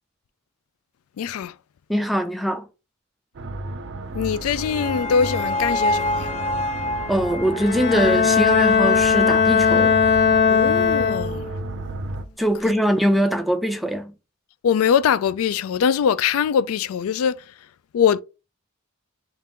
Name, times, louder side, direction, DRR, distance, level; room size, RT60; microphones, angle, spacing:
voice 1, 1.2-1.5 4.1-6.3 10.5-11.5 14.6-17.4 17.9-18.2, left 7 dB, 90° left, 0.3 m, -22 dB
voice 2, 1.9-2.6 7.1-10.0 12.4-14.1, equal, ahead, 0.4 m, -22 dB
sound 1, 3.3-12.2, right 2 dB, 55° right, 0.5 m, -33 dB
sound 2, 4.2-9.4, left 1 dB, 30° left, 0.7 m, -28 dB
Bowed string instrument, 7.5-11.6, left 6 dB, 55° left, 1.1 m, -18 dB
3.6 x 2.5 x 4.3 m
head